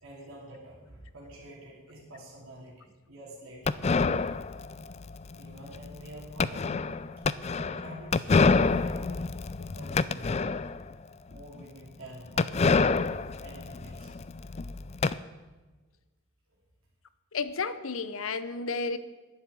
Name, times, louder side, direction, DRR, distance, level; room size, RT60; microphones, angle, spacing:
voice 1, 0.0-3.8 4.8-4.9 5.3-7.0 7.3-9.1 9.7-10.8 11.3-12.7 13.4-14.1, right 1 dB, 85° right, -4 dB, 3.0 m, -47 dB
sound 1, 3.7-10.9 11.3-11.4 11.6-11.7 12.4-15.1, left 4 dB, 30° left, 0.3 m, -27 dB
voice 2, 17.3-19.0, left 4 dB, 75° left, 13 dB, 0.8 m, -32 dB
11.0 x 7.3 x 9.2 m, 1.2 s
head